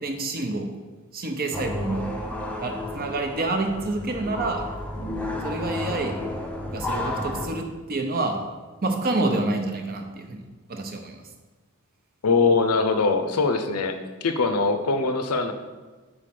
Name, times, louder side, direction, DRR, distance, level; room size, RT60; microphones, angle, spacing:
voice 1, 0.0-0.7 1.1-2.1 2.6-4.7 5.4-6.1 6.7-8.4 8.8-10.4 10.7-11.2, right 2 dB, 45° right, 4 dB, 0.7 m, -28 dB
sound 1, 1.5-7.5, left 1 dB, 5° left, 0.5 m, -32 dB
voice 2, 12.2-15.5, left 4 dB, 80° left, 8 dB, 0.6 m, -22 dB
4.9 x 4.1 x 5.9 m, 1.3 s
head